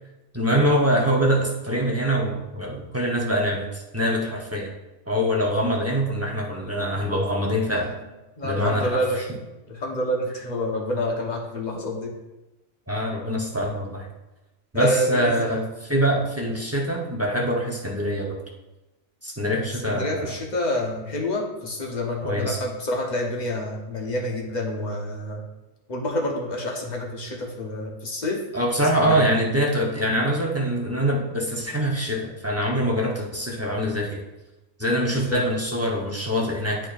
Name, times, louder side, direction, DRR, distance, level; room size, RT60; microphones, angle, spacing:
voice 1, 0.3-4.7 5.1-7.9 8.4-9.0 12.9-14.1 14.7-18.4 19.2-20.3 22.2-22.6 28.5-34.2 34.8-36.9, equal, 15° right, -2 dB, 0.7 m, -24 dB
voice 2, 8.4-9.2 9.7-12.1 14.7-15.3 19.9-25.4 25.9-28.4 28.8-29.3 35.1-35.4, left 1 dB, 35° left, 0 dB, 1.1 m, -28 dB
10.5 x 4.4 x 2.5 m, 1.0 s
omnidirectional pair, 1.4 m